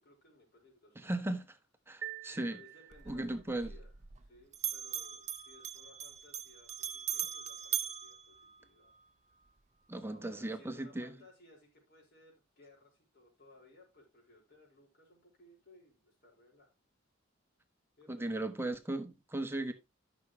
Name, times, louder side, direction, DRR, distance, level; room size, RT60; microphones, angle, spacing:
voice 1, 0.0-1.1 2.3-3.9 4.2-8.9 10.1-16.7 18.0-18.4 19.6-19.7, left 2 dB, 55° left, 4.9 m, -61 dB
voice 2, 0.9-1.6 1.9-2.6 3.1-3.7 9.9-11.1 18.1-19.7, right 1 dB, 10° right, 1.2 m, -37 dB
sound 1, 2.0-3.5, right 10 dB, 65° right, 1.0 m, -46 dB
Bell, 2.9-4.3 4.5-9.0, right 10 dB, 35° right, 0.7 m, -40 dB
13.0 x 6.3 x 3.1 m
head